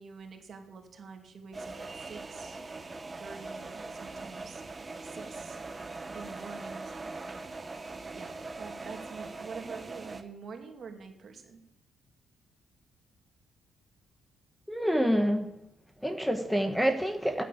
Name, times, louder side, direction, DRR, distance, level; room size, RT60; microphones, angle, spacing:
voice 1, 0.0-2.6 3.2-4.6 5.0-5.6 6.1-7.1 8.1-11.6, right 5 dB, 50° right, 4 dB, 2.4 m, -46 dB
sound 1, 1.5-10.2, right 3 dB, 25° right, 1.2 m, -41 dB
voice 2, 14.7-15.5 16.0-17.4, equal, ahead, 7 dB, 1.2 m, -27 dB
9.7 x 8.5 x 8.4 m, 0.83 s
cardioid pair, 90°, 0 cm